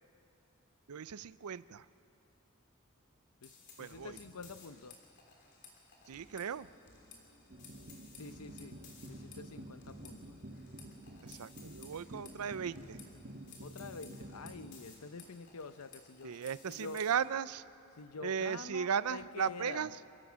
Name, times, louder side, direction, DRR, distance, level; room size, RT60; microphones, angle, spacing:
voice 1, 0.9-1.9 3.8-4.2 6.1-6.7 11.2-13.0 16.2-17.6 18.2-19.9, right 7 dB, 90° right, 17 dB, 0.5 m, -36 dB
voice 2, 3.4-5.0 8.2-8.8 9.1-10.3 13.6-17.0 17.9-19.9, left 4 dB, 90° left, 12 dB, 0.8 m, -47 dB
sound 1, 3.4-17.1, left 5 dB, 50° left, 3.4 m, -58 dB
sound 2, 7.5-14.7, right 1 dB, 45° right, 1.4 m, -50 dB
28.0 x 16.0 x 6.3 m, 2.6 s
head